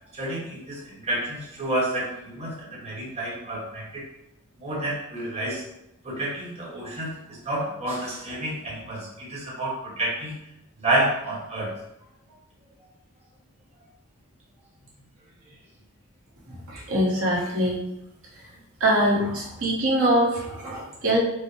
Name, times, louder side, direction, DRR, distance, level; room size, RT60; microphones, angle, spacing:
voice 1, 0.1-4.0 4.6-5.6 6.0-10.4 10.8-11.7 20.8-20.9, right 1 dB, 30° right, -6 dB, 1.0 m, -29 dB
voice 2, 16.7-17.8 18.8-21.2, right 1 dB, 65° right, -5 dB, 1.0 m, -23 dB
4.8 x 2.0 x 3.1 m, 0.87 s
head